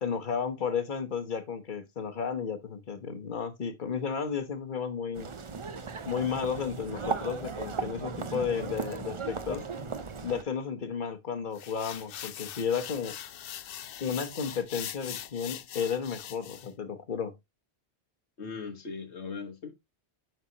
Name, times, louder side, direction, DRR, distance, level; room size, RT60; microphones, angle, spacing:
voice 1, 0.0-5.3 6.1-9.7 10.2-13.2 14.0-17.3, left 6 dB, 50° left, 1.2 m, -33 dB
sound 1, 5.1-10.4, right 5 dB, 35° right, 0.6 m, -36 dB
sound 2, 11.5-16.7, left 10 dB, 65° left, 0.7 m, -42 dB
voice 2, 18.4-19.7, left 5 dB, 85° left, 1.8 m, -39 dB
7.7 x 5.9 x 2.9 m
omnidirectional pair, 1.1 m